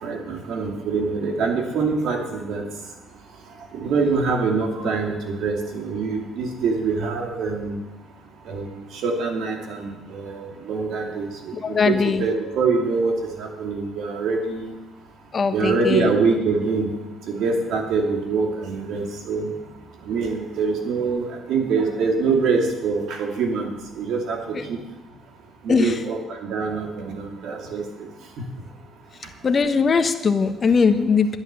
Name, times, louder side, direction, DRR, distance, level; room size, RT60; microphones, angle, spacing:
voice 1, 0.0-2.6 3.7-7.8 8.5-14.7 15.5-16.9 17.3-19.5 20.1-23.7 24.0-24.8 25.6-27.9 28.4-28.5, right 4 dB, 70° right, 2 dB, 2.6 m, -24 dB
voice 2, 11.6-12.2 15.3-16.1 24.5-24.6 25.7-26.0 29.4-31.4, left 5 dB, 40° left, 8 dB, 1.4 m, -20 dB
11.0 x 10.5 x 6.9 m, 1.1 s
supercardioid pair, 65°, 0 cm